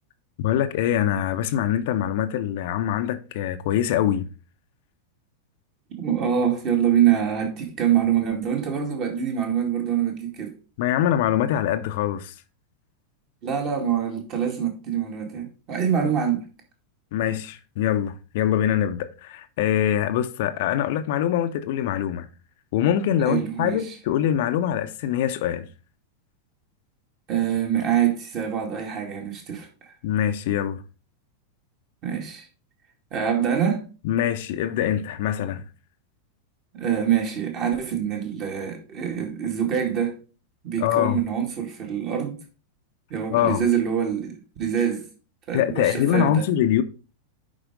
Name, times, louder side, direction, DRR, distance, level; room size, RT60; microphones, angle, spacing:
voice 1, 0.4-4.3 10.8-12.4 17.1-22.3 22.7-25.7 30.0-30.8 34.0-35.6 40.8-41.2 43.3-43.6 45.5-46.8, left 10 dB, 50° left, 0.6 m, -23 dB
voice 2, 6.0-10.6 13.4-16.5 23.3-24.0 27.3-29.9 32.0-32.5 33.1-33.9 36.7-40.2 40.6-42.4 43.1-45.1 45.5-46.5, right 8 dB, 35° right, 2.3 m, -25 dB
10.0 x 4.8 x 3.8 m
figure-of-eight pair, 90°, 0 cm